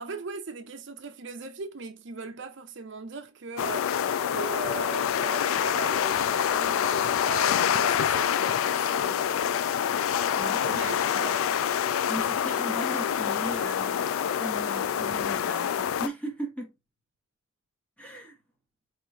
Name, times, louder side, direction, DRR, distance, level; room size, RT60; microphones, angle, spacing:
voice 1, 0.0-4.0 4.3-9.6 10.4-11.5, right 4 dB, 55° right, 0.6 m, -39 dB
sound 1, 3.6-16.1, left 8 dB, 75° left, 0.3 m, -26 dB
voice 2, 10.3-11.4 12.1-14.1 14.4-16.7 18.0-18.4, equal, 5° left, 1.0 m, -38 dB
4.4 x 3.1 x 2.4 m
head